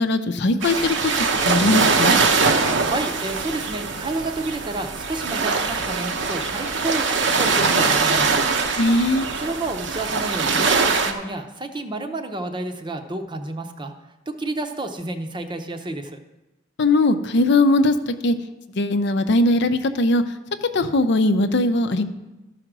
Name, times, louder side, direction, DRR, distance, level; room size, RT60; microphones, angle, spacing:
voice 1, 0.0-2.2 8.8-9.3 16.8-18.4 18.7-20.2 20.7-22.0, left 2 dB, 65° left, 9 dB, 0.6 m, -20 dB
sound 1, 0.6-11.1, right 4 dB, 70° right, 0.9 m, -22 dB
voice 2, 2.8-8.5 9.4-13.9 14.3-16.2, right 2 dB, 25° right, 7 dB, 0.8 m, -30 dB
13.0 x 5.0 x 6.0 m, 1.0 s
head